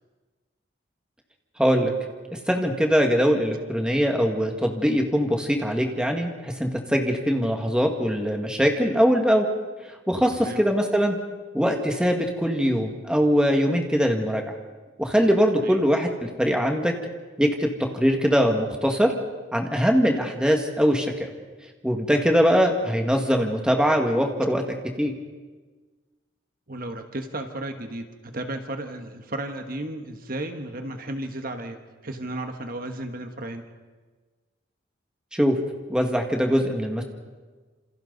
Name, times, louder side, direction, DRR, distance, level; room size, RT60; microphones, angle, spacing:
voice 1, 1.6-1.9 2.5-9.5 10.1-11.2 11.5-14.4 15.0-16.9 17.4-17.7 17.9-19.1 19.5-21.3 21.8-24.6 25.0-25.1 35.3-35.6 35.9-37.0, equal, 5° right, 2 dB, 1.9 m, -22 dB
voice 2, 26.7-33.6, right 1 dB, 45° right, 6 dB, 1.4 m, -34 dB
28.0 x 27.5 x 4.0 m, 1.4 s
head